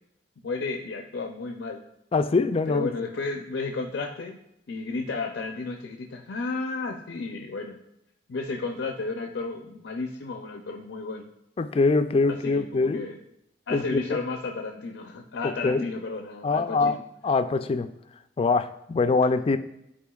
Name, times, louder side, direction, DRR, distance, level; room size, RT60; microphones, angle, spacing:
voice 1, 0.4-1.8 2.7-4.4 4.7-7.8 8.3-11.3 12.3-13.2 13.7-17.0, left 3 dB, 90° left, 2 dB, 0.5 m, -33 dB
voice 2, 2.1-2.9 11.6-13.0 13.7-14.2 15.6-15.8 16.4-17.0 17.2-17.9 18.4-19.6, left 3 dB, 30° left, 10 dB, 0.3 m, -23 dB
10.5 x 4.3 x 2.3 m, 0.82 s
head